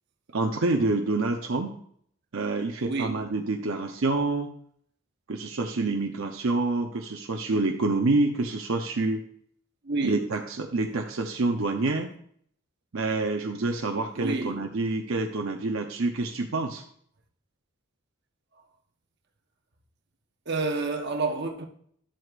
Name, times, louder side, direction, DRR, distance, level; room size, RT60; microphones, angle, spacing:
voice 1, 0.3-1.7 2.3-4.5 5.3-9.3 10.0-12.1 12.9-16.8, right 3 dB, 70° right, 0.7 m, -27 dB
voice 2, 2.8-3.1 9.8-10.3 14.1-14.6 20.5-21.7, right 3 dB, 50° right, 1.0 m, -29 dB
11.5 x 7.8 x 2.5 m
head